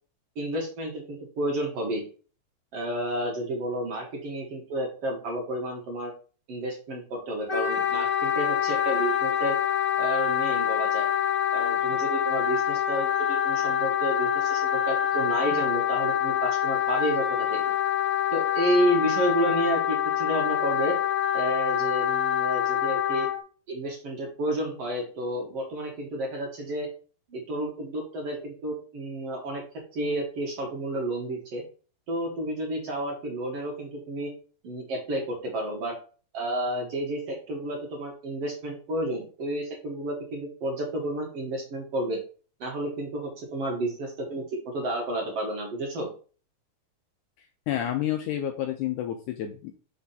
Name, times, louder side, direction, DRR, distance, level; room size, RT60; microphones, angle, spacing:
voice 1, 0.4-2.0 2.7-6.1 6.5-9.6 10.0-11.1 11.5-17.6 18.3-21.0 21.3-23.3 23.7-26.9 27.3-29.6 29.9-31.6 32.1-34.3 34.6-36.0 36.3-42.2 42.6-46.1, right 1 dB, 55° right, 0 dB, 2.1 m, -30 dB
Wind instrument woodwind instrument, 7.5-23.4, left 10 dB, 20° left, 1.6 m, -26 dB
voice 2, 47.7-49.7, left 11 dB, 80° left, 5 dB, 1.8 m, -29 dB
5.6 x 3.5 x 5.6 m, 0.38 s
omnidirectional pair, 4.1 m